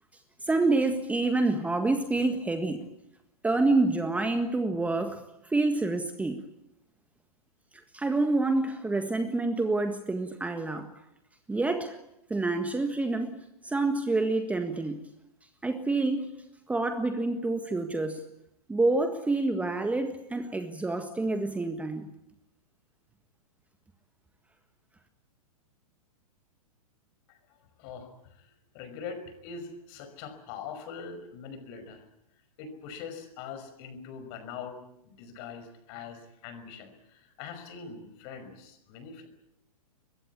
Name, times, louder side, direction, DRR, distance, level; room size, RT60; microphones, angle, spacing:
voice 1, 0.4-2.9 3.4-6.4 7.9-10.9 11.5-12.0 12.3-13.4 13.6-15.0 15.6-16.3 16.7-18.2 18.7-22.1, right 2 dB, 5° right, 1.6 m, -27 dB
voice 2, 27.8-28.5 28.7-32.0 32.6-34.8 35.0-39.3, left 6 dB, 40° left, 5.5 m, -42 dB
24.0 x 22.0 x 8.5 m
figure-of-eight pair, 105°, 19 cm